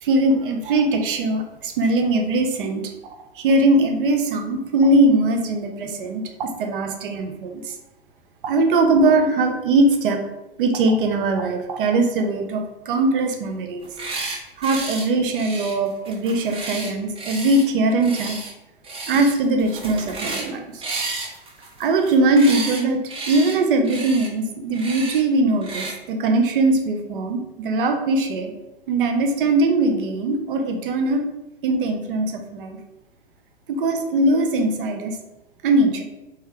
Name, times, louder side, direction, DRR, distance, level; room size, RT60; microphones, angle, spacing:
voice 1, 0.0-2.8 3.4-7.7 8.4-10.2 10.6-13.9 14.6-18.4 19.1-20.8 21.8-23.0 23.3-28.5 28.9-31.3 31.6-32.8 33.7-35.2 35.6-36.0, right 2 dB, 60° right, 5 dB, 0.7 m, -20 dB
sound 1, 13.8-14.4 14.6-15.0 15.3-17.6 18.0-18.5 18.8-19.3 19.6-20.5 20.8-22.8 23.1-23.6 23.8-24.3 24.7-25.2 25.6-25.9, right 3 dB, 20° right, 0.8 m, -32 dB
3.1 x 3.0 x 3.7 m, 0.94 s
figure-of-eight pair, 100°, 31 cm